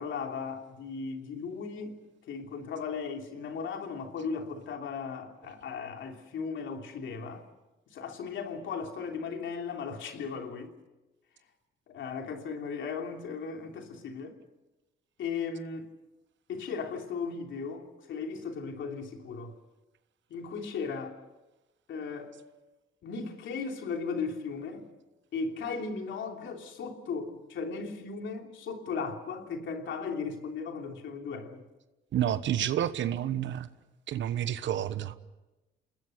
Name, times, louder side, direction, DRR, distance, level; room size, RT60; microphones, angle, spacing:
voice 1, 0.0-2.0 2.3-7.5 7.9-10.7 11.9-14.4 15.2-15.9 16.5-19.5 20.3-21.2 21.9-22.4 23.0-24.8 25.3-31.6, left 5 dB, 70° left, 3.2 m, -36 dB
voice 2, 32.1-33.7 34.1-35.1, right 11 dB, 70° right, 1.2 m, -29 dB
28.5 x 20.0 x 6.6 m
cardioid pair, 90°, 20 cm